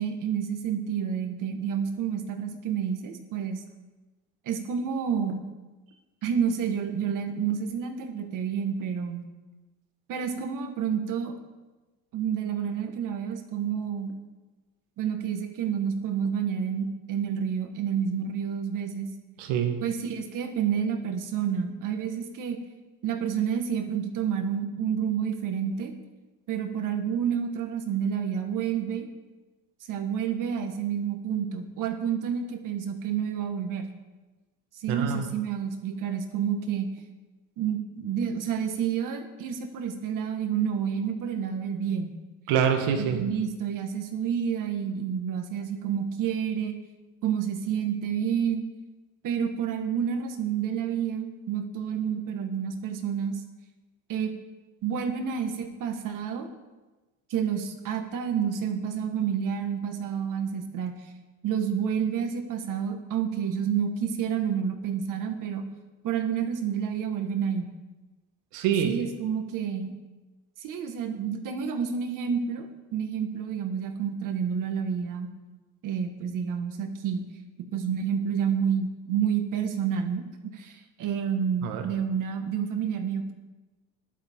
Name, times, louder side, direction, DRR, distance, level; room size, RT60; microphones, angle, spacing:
voice 1, 0.0-3.6 4.5-5.4 6.2-9.3 10.1-11.3 12.1-14.1 15.0-19.1 19.8-22.6 23.0-25.9 26.5-29.1 29.9-33.8 34.8-36.9 37.6-42.2 43.0-46.8 47.2-48.7 49.2-53.4 54.1-54.3 54.8-56.5 57.3-60.9 61.4-65.6 66.0-67.7 68.8-69.9 70.6-75.3 75.8-77.3 77.7-80.2 80.5-83.3, right 7 dB, 55° right, 5 dB, 1.8 m, -29 dB
voice 2, 19.4-19.8 34.9-35.3 42.5-43.2 68.5-69.0 81.6-81.8, right 8 dB, 90° right, 4 dB, 1.8 m, -25 dB
14.5 x 11.5 x 3.8 m, 1.2 s
cardioid pair, 115°, 38 cm